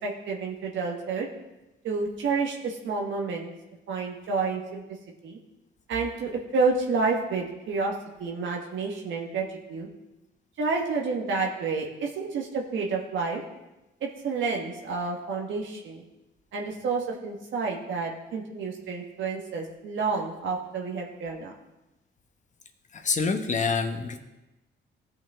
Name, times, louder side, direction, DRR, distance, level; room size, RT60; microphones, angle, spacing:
voice 1, 0.0-1.3 1.8-3.5 3.9-4.8 5.2-5.4 5.9-7.9 8.2-9.9 10.6-13.4 14.0-16.0 16.5-21.5, right 4 dB, 70° right, 0 dB, 1.4 m, -29 dB
voice 2, 22.9-24.2, left 4 dB, 40° left, 6 dB, 1.0 m, -26 dB
16.5 x 5.6 x 3.5 m, 0.99 s
cardioid pair, 90°, 20 cm